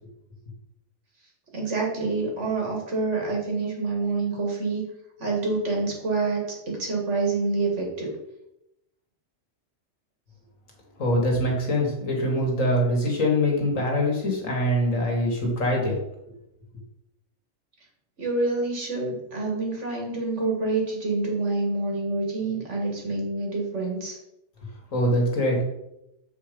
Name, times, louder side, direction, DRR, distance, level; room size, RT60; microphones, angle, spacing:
voice 1, 1.5-4.8 5.2-8.1 18.2-24.2, right 3 dB, 65° right, -1 dB, 2.3 m, -27 dB
voice 2, 11.0-16.0 24.9-25.6, equal, 85° left, -1 dB, 2.3 m, -23 dB
7.7 x 4.7 x 5.2 m, 0.86 s
omnidirectional pair, 1.3 m